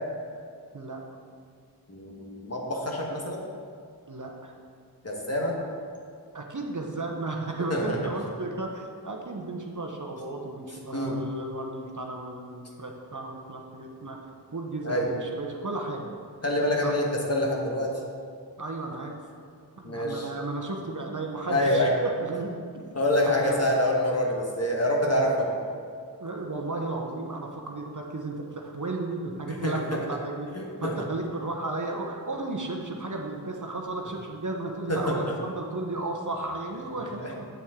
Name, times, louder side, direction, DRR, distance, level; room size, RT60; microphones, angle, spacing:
voice 1, 1.9-3.4 5.0-5.6 7.7-8.0 10.9-11.2 14.8-15.1 16.4-18.0 19.8-20.3 21.5-21.9 22.9-25.6 29.5-30.0 30.5-30.9 34.9-35.2 37.1-37.3, left 1 dB, 35° left, -1 dB, 1.4 m, -26 dB
voice 2, 4.1-4.5 6.3-14.2 14.5-16.1 16.8-16.9 18.6-19.2 19.8-22.5 23.2-23.7 26.2-29.8 30.1-30.5 30.8-37.4, right 2 dB, 45° right, 1 dB, 0.9 m, -34 dB
8.1 x 7.1 x 3.7 m, 2.2 s
wide cardioid pair, 60°, 41 cm